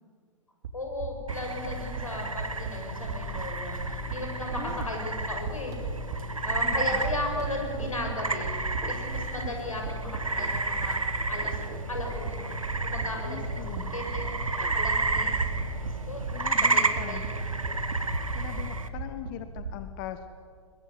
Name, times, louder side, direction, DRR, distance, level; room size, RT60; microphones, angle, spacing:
sound 1, 0.6-0.7 1.0-1.3 1.6-2.0 2.3-2.7 3.0-3.4 3.7-4.1 4.5-4.9 5.1-5.5 5.8-6.2 6.5-7.5 7.8-8.1 8.4-8.8 9.1-9.5 9.8-10.9 11.2-11.6 11.9-12.3 12.6-13.1 13.4-13.8 14.1-15.9 16.2-16.6 16.8-18.0 18.3-19.8, right 5 dB, 55° right, 3.0 m, -35 dB
voice 1, 0.7-5.7 6.4-8.5 8.9-11.0 11.3-11.6 11.9-12.5 12.8-15.4 16.1-16.2 16.6-17.3, left 1 dB, 85° left, 2 dB, 7.1 m, -36 dB
sound 2, 1.3-18.9, right 3 dB, 85° right, 1.9 m, -31 dB
sound 3, 3.7-11.9, right 2 dB, 20° right, 4.3 m, -46 dB
voice 2, 4.5-4.9 6.6-7.0 9.4-9.5 13.3-13.9 16.3-17.2 18.3-20.3, left 12 dB, 40° left, 10 dB, 1.3 m, -40 dB
22.5 x 21.5 x 9.4 m, 2.1 s
figure-of-eight pair, 110°, 17 cm